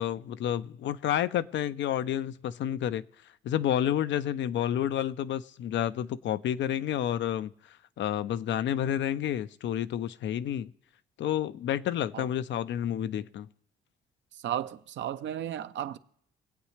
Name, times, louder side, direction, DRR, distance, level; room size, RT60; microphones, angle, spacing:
voice 1, 0.0-3.0 3.4-7.5 8.0-10.7 11.2-13.5, left 10 dB, 70° left, 0.5 m, -30 dB
voice 2, 14.3-16.0, right 10 dB, 70° right, 0.7 m, -34 dB
23.5 x 8.3 x 3.3 m
cardioid pair, 90°, 20 cm